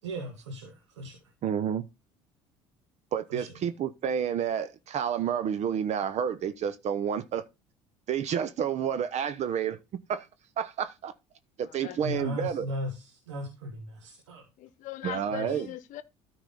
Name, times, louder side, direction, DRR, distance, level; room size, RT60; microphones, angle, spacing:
voice 1, 0.0-1.2 3.3-3.5 12.0-14.4 15.3-15.6, equal, 90° right, 1.8 m, -37 dB
voice 2, 1.4-1.9 3.1-7.4 8.1-9.8 10.1-10.3 10.6-11.1 11.6-12.7 15.0-15.7, right 8 dB, 50° right, 0.9 m, -30 dB
voice 3, 11.8-12.3 14.6-16.0, left 13 dB, 60° left, 0.9 m, -40 dB
13.0 x 4.9 x 3.9 m
hypercardioid pair, 70°, 15 cm